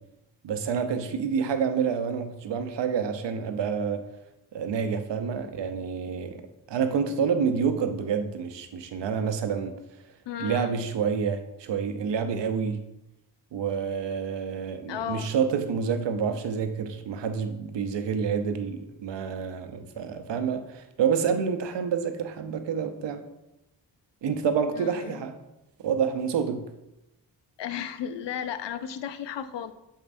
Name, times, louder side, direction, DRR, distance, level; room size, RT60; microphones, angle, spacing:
voice 1, 0.4-4.0 4.5-6.4 6.7-9.7 10.4-12.8 13.5-23.2 24.2-25.4 25.8-26.7, right 6 dB, 85° right, 0.6 m, -28 dB
voice 2, 10.3-10.7 14.9-15.3 24.8-25.2 27.6-29.7, left 9 dB, 85° left, 0.5 m, -34 dB
7.1 x 5.3 x 2.5 m
cardioid pair, 50°, 42 cm